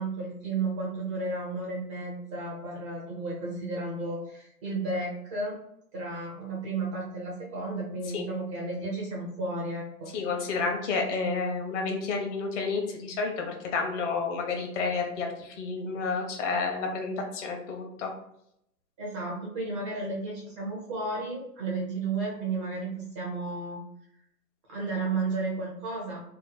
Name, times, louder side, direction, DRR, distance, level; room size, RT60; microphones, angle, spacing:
voice 1, 0.0-5.6 5.9-10.1 19.0-23.8 24.7-26.2, right 3 dB, 20° right, -4 dB, 0.4 m, -33 dB
voice 2, 10.1-18.1, left 4 dB, 50° left, 2 dB, 0.9 m, -30 dB
2.9 x 2.0 x 3.8 m, 0.76 s
hypercardioid pair, 125°, 47 cm